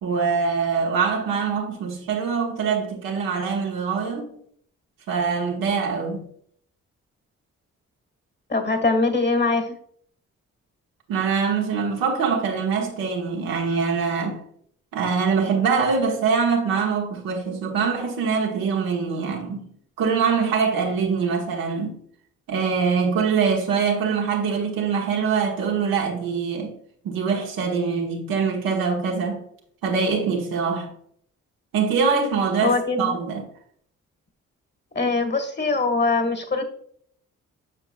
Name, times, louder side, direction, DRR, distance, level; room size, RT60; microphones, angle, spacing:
voice 1, 0.0-4.3 5.1-6.3 11.1-14.4 14.9-19.7 20.0-22.0 22.5-26.8 27.0-29.5 29.8-30.9 31.7-33.4, right 5 dB, 80° right, 1.4 m, -23 dB
voice 2, 8.5-9.8 32.6-33.2 34.9-36.6, left 3 dB, 30° left, 1.6 m, -22 dB
7.7 x 6.0 x 2.3 m
hypercardioid pair, 45°, 35 cm